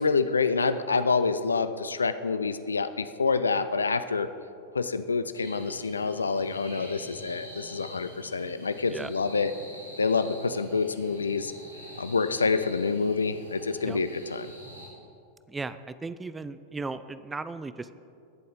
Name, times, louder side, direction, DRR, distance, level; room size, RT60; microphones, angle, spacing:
voice 1, 0.0-4.3 4.7-9.5 10.0-11.5 12.0-14.5, left 4 dB, 75° left, 12 dB, 0.4 m, -27 dB
sound 1, 5.4-14.9, equal, 80° right, 2.3 m, -46 dB
voice 2, 15.5-17.9, right 3 dB, 10° right, 13 dB, 0.4 m, -36 dB
19.5 x 7.6 x 3.7 m, 2.5 s
figure-of-eight pair, 90°, 0 cm